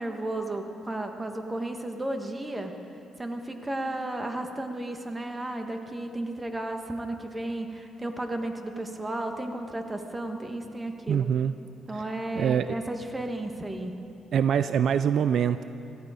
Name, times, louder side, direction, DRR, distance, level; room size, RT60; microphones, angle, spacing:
voice 1, 0.0-2.7 3.2-11.3 11.9-13.9, right 1 dB, 15° right, 5 dB, 1.4 m, -33 dB
voice 2, 11.1-11.5 11.9-12.0 12.4-12.7 14.3-15.6, right 8 dB, 65° right, 12 dB, 0.3 m, -24 dB
17.0 x 14.5 x 5.0 m, 2.8 s
cardioid pair, 90°, 0 cm